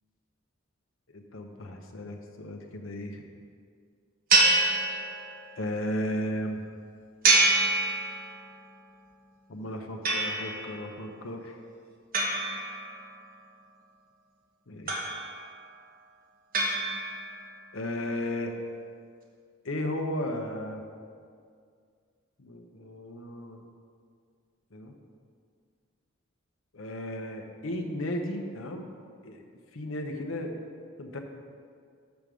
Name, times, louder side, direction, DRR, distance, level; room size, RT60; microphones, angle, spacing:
voice 1, 1.1-3.2 5.6-6.6 9.5-11.6 14.7-15.0 17.7-18.6 19.6-20.8 22.4-23.7 24.7-24.9 26.7-28.9 29.2-29.5 29.7-30.7 31.0-31.2, left 1 dB, 80° left, 4 dB, 0.9 m, -34 dB
sound 1, 4.3-5.5 7.2-8.5 10.0-10.8 12.1-13.3 14.9-15.6 16.5-17.4, right 3 dB, 45° right, 1.3 m, -26 dB
8.2 x 5.2 x 6.2 m, 2.2 s
head